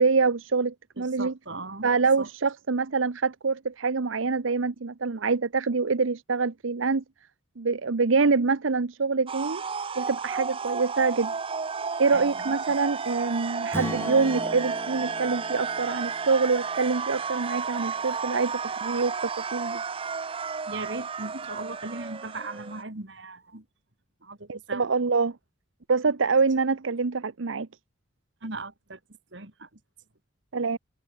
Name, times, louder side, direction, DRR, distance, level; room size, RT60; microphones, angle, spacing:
voice 1, 0.0-1.3 1.8-7.0 7.6-9.6 10.0-11.3 12.0-19.1 19.5-19.8 24.5-25.4 25.9-27.7 30.5-30.8, right 4 dB, 90° right, 0.8 m, -25 dB
voice 2, 1.0-1.9 2.2-2.3 12.1-12.8 20.7-23.6 24.2-24.9 26.1-26.2 28.4-29.0 29.3-29.7, right 2 dB, 65° right, 2.5 m, -38 dB
sound 1, 9.3-22.8, right 5 dB, 30° right, 0.5 m, -32 dB
Strum, 13.7-17.9, equal, 15° left, 3.0 m, -39 dB
head